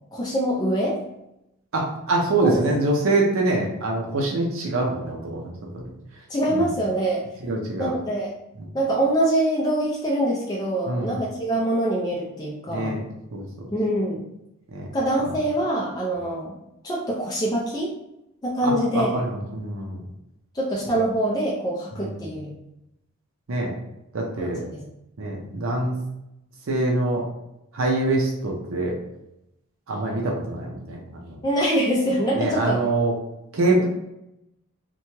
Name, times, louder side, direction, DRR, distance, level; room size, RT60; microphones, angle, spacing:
voice 1, 0.1-1.0 2.4-2.8 6.3-7.2 7.8-8.3 8.7-12.9 13.7-14.2 14.9-16.6 16.8-17.9 18.4-19.1 20.5-22.5 24.4-24.8 31.4-32.8 33.8-33.9, right 1 dB, 15° left, -5 dB, 0.4 m, -24 dB
voice 2, 1.7-5.9 6.5-6.7 7.4-7.9 10.9-11.2 12.7-13.0 13.3-13.5 14.7-14.9 15.2-15.3 18.6-20.0 22.0-22.3 23.5-23.7 24.1-24.6 25.2-26.0 26.7-27.2 27.7-28.9 29.9-31.4 32.4-33.1 33.5-33.9, right 2 dB, 60° right, -1 dB, 0.5 m, -24 dB
3.0 x 2.2 x 2.8 m, 0.85 s
head